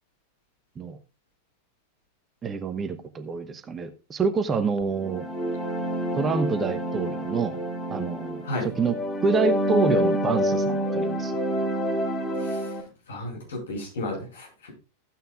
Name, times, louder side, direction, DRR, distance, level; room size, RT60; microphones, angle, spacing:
voice 1, 2.4-5.2 6.1-7.6 7.9-8.9 9.2-11.4, right 4 dB, 20° right, 10 dB, 0.9 m, -27 dB
sound 1, 4.9-12.8, equal, 10° left, 2.3 m, -27 dB
voice 2, 12.4-12.7 13.1-14.7, left 1 dB, 65° left, -1 dB, 6.5 m, -33 dB
15.0 x 9.1 x 2.4 m, 0.31 s
figure-of-eight pair, 90°, 0 cm